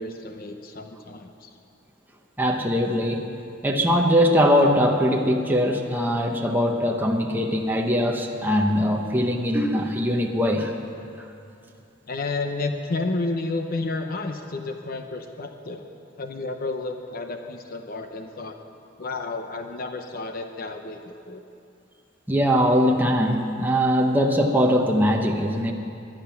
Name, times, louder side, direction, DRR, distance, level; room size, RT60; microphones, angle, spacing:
voice 1, 0.0-1.5 12.1-15.9 16.2-18.6 19.0-21.4, left 3 dB, 50° left, 5 dB, 0.8 m, -31 dB
voice 2, 2.4-3.3 3.6-10.7 22.3-25.7, equal, 10° right, 1 dB, 1.0 m, -21 dB
22.5 x 10.5 x 5.9 m, 2.5 s
head